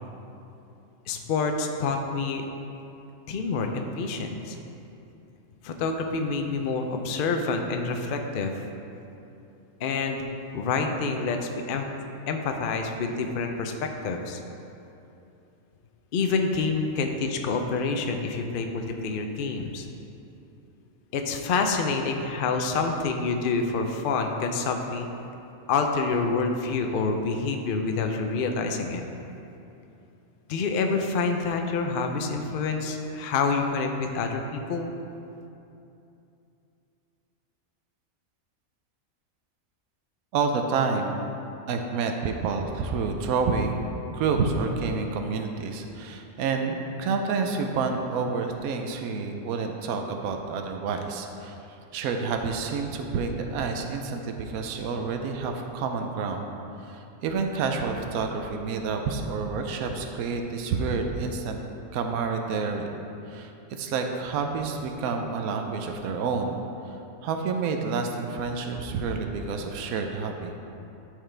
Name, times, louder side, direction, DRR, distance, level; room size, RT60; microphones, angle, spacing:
voice 1, 1.1-2.4 3.3-4.6 5.6-8.5 9.8-10.3 10.5-11.9 12.3-14.4 16.1-19.9 21.1-25.1 25.7-29.0 30.5-34.9, left 4 dB, 65° left, 4 dB, 0.5 m, -27 dB
voice 2, 40.3-41.2 41.7-43.9 44.1-51.6 51.9-56.5 56.9-61.6 61.9-62.9 63.3-66.6 66.8-66.9 67.2-70.6, right 4 dB, 80° right, 4 dB, 1.1 m, -29 dB
12.5 x 4.8 x 3.3 m, 2.8 s
omnidirectional pair, 1.5 m